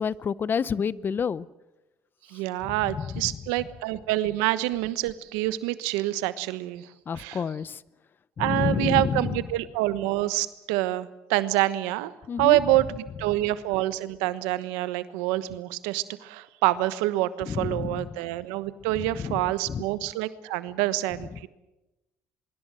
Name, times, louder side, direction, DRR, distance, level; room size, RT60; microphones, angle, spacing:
voice 1, 0.0-1.5 2.9-3.1 7.1-7.8 8.4-9.2 12.3-12.6 17.5-18.1 19.2-19.4 19.7-19.8, left 6 dB, 40° left, 19 dB, 0.8 m, -28 dB
voice 2, 2.3-6.9 7.1-7.4 8.4-12.1 12.4-21.5, right 16 dB, 90° right, 14 dB, 1.2 m, -27 dB
24.0 x 23.5 x 7.7 m, 0.98 s
supercardioid pair, 80°, 5 cm